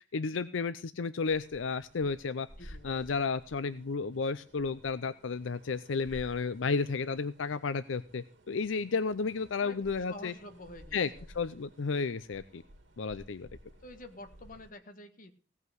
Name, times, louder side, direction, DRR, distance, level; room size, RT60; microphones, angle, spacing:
voice 1, 0.1-10.3 10.9-11.1 11.3-12.6 13.0-13.5, left 4 dB, 80° left, 13 dB, 0.5 m, -32 dB
sound 1, 1.2-14.7, equal, 70° right, 2.7 m, -55 dB
voice 2, 2.6-3.3 9.6-11.3 13.8-15.3, left 1 dB, 45° left, 7 dB, 1.6 m, -49 dB
17.0 x 5.7 x 7.7 m, 0.41 s
head